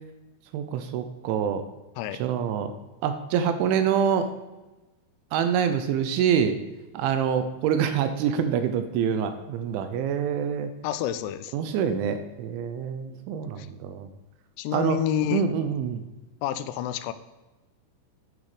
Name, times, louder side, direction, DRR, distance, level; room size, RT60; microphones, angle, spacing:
voice 1, 0.5-1.6 2.2-2.7 3.0-4.3 5.3-6.6 6.9-10.7 11.5-14.1 14.7-15.0 15.3-16.0, right 8 dB, 80° right, 9 dB, 3.0 m, -26 dB
voice 2, 10.8-11.5 13.6-13.7 14.6-15.4 16.4-17.1, left 11 dB, 80° left, 11 dB, 2.7 m, -28 dB
11.0 x 9.4 x 5.0 m, 1.1 s
omnidirectional pair, 5.6 m